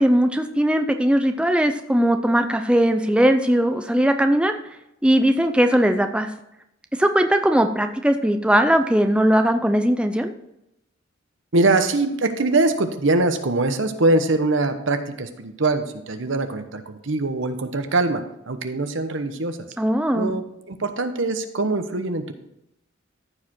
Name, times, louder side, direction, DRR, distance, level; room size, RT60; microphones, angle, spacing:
voice 1, 0.0-4.5 5.0-6.3 7.0-10.3 19.8-20.3, right 1 dB, 5° right, 6 dB, 0.5 m, -19 dB
voice 2, 11.5-19.6 20.1-22.3, right 2 dB, 70° right, 8 dB, 1.0 m, -23 dB
14.0 x 4.9 x 4.4 m, 0.84 s
head